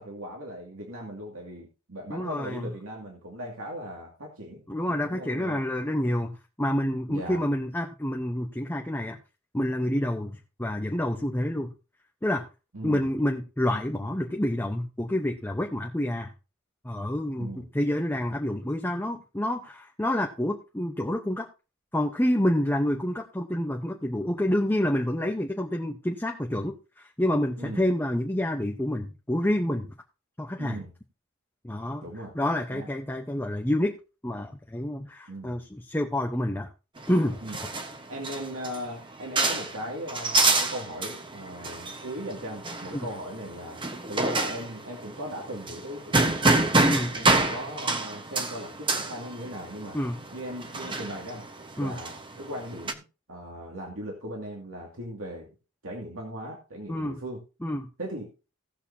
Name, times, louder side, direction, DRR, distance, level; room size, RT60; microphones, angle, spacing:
voice 1, 0.0-4.6 4.9-5.6 7.1-7.4 12.7-13.1 17.4-17.7 27.6-27.8 30.6-30.9 32.0-32.3 32.7-32.9 35.3-35.6 37.4-37.6 38.1-43.8 44.1-46.6 47.1-50.0 50.3-51.4 51.8-53.0 53.3-55.5 55.8-57.4 58.0-58.3, equal, 75° right, -1 dB, 2.4 m, -38 dB
voice 2, 2.1-2.7 4.7-9.2 9.5-11.7 12.2-12.5 12.8-16.3 16.8-21.5 21.9-29.9 30.4-30.8 31.6-32.0 32.3-33.9 34.2-36.7 37.1-37.4 42.9-43.1 46.9-47.1 49.9-50.2 51.8-52.0 56.9-57.2 57.6-57.9, left 1 dB, 10° left, 1 dB, 0.9 m, -28 dB
sound 1, 37.0-52.9, right 2 dB, 25° right, 1.2 m, -28 dB
18.0 x 6.6 x 2.8 m, 0.30 s
head